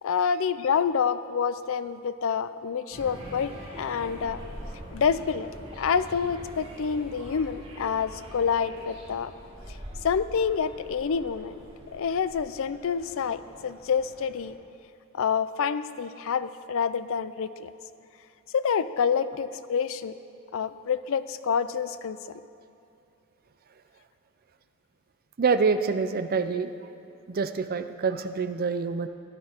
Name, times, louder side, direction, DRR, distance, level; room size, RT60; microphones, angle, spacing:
voice 1, 0.0-4.4 4.9-9.3 10.0-11.5 11.9-14.6 15.1-17.7 18.5-20.1 20.5-22.2, left 6 dB, 65° left, 14 dB, 0.4 m, -27 dB
sound 1, 2.9-14.5, equal, 30° right, 2.4 m, -44 dB
voice 2, 25.4-26.7 27.3-29.1, right 5 dB, 45° right, 10 dB, 0.5 m, -26 dB
13.0 x 10.5 x 4.4 m, 2.6 s
head